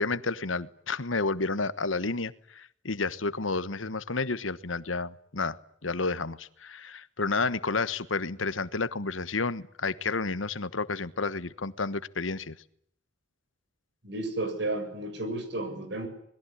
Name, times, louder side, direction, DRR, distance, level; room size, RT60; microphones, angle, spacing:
voice 1, 0.0-5.6 5.8-12.6, left 3 dB, 90° left, 15 dB, 1.3 m, -31 dB
voice 2, 14.0-16.1, right 2 dB, 60° right, 8 dB, 7.4 m, -32 dB
27.0 x 21.0 x 10.0 m, 0.69 s
head